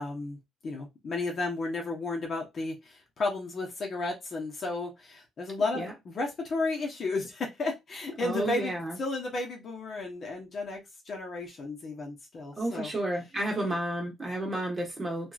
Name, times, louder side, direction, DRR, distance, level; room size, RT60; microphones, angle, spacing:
voice 1, 0.0-10.8 11.1-12.9, left 3 dB, 40° left, 1.1 m, -33 dB
voice 2, 8.2-9.0 12.6-15.3, right 1 dB, 20° right, 1.4 m, -31 dB
2.9 x 2.5 x 2.4 m
cardioid pair, 120°, 0 cm